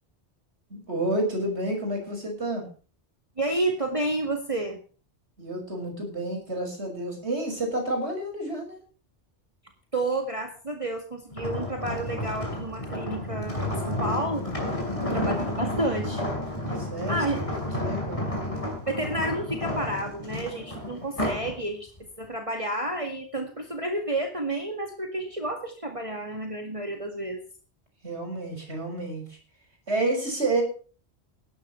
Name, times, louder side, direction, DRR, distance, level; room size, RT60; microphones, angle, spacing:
voice 1, 0.7-2.7 5.4-8.8 14.8-15.2 16.8-17.4 17.8-18.4 28.0-29.4 29.9-30.6, right 1 dB, 80° right, 3 dB, 6.6 m, -30 dB
voice 2, 3.4-4.8 9.9-14.5 15.0-16.2 17.1-17.4 18.9-21.9 22.2-27.4, right 1 dB, 30° right, 4 dB, 2.0 m, -30 dB
sound 1, 11.3-21.5 22.0-22.2, left 1 dB, 30° left, 5.4 m, -31 dB
17.0 x 13.0 x 3.2 m, 0.38 s
omnidirectional pair, 1.1 m